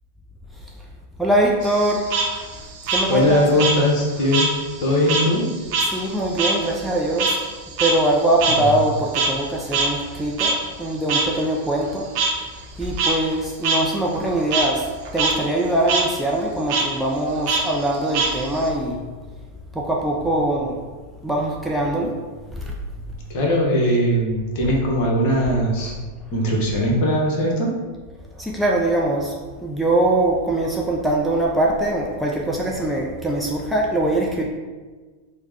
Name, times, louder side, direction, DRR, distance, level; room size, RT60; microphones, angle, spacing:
voice 1, 1.2-2.1 2.9-3.4 5.8-7.4 7.8-12.1 12.8-19.1 19.7-20.8 21.2-22.2 22.5-22.7 24.6-24.8 25.8-26.0 28.3-34.4, right 1 dB, ahead, -3 dB, 0.4 m, -22 dB
Frog, 1.6-4.5 4.8-9.5 9.7-9.9 10.4-10.5 11.1-11.2 12.1-12.3 12.8-13.1 13.6-13.8 14.1-14.6 15.0-15.3 15.6-16.0 16.7-16.8 17.5-18.7, right 4 dB, 45° right, 0.7 m, -23 dB
voice 2, 3.1-4.5 4.8-5.5 8.6-8.7 23.3-25.9 26.3-27.7, equal, 45° left, -1 dB, 0.9 m, -20 dB
4.5 x 2.1 x 3.5 m, 1.4 s
figure-of-eight pair, 90°, 0 cm